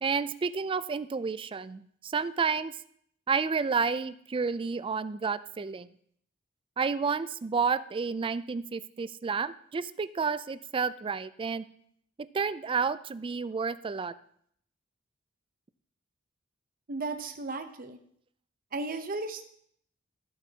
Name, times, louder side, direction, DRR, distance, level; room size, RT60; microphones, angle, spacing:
voice 1, 0.0-2.7 3.3-5.9 6.8-11.6 12.3-14.1, right 5 dB, 25° right, 15 dB, 0.3 m, -30 dB
voice 2, 16.9-18.0 18.7-19.5, right 3 dB, 45° right, 7 dB, 0.7 m, -35 dB
14.5 x 8.2 x 2.8 m, 0.67 s
head